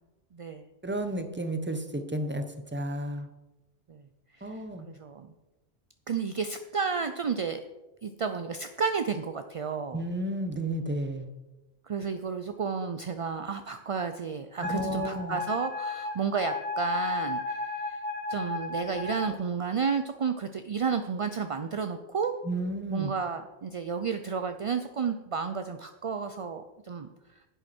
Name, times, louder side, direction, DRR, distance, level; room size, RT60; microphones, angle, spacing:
voice 1, 0.3-0.7 3.9-4.0 4.4-4.6 4.9-5.3 6.1-7.6 8.0-10.1 11.9-17.6 17.9-18.0 18.3-22.3 22.9-27.1, right 6 dB, 45° right, 8 dB, 0.4 m, -32 dB
voice 2, 0.8-2.4 2.7-3.3 4.4-4.9 9.9-11.3 14.6-15.4 22.4-23.1, right 1 dB, 10° right, 7 dB, 0.8 m, -32 dB
Wind instrument woodwind instrument, 14.6-19.3, left 3 dB, 10° left, 1.5 m, -33 dB
11.0 x 9.2 x 4.3 m, 1.1 s
omnidirectional pair, 1.1 m